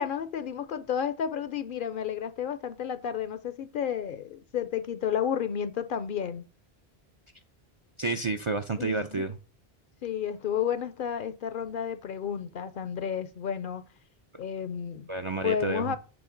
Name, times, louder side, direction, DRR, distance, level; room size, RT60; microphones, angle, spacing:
voice 1, 0.0-6.4 8.8-9.2 10.0-13.8 14.4-15.1 15.4-16.0, left 8 dB, 60° left, 0.7 m, -31 dB
voice 2, 8.0-9.4 15.1-16.0, right 3 dB, 45° right, 0.4 m, -30 dB
7.0 x 3.5 x 3.8 m
omnidirectional pair, 1.1 m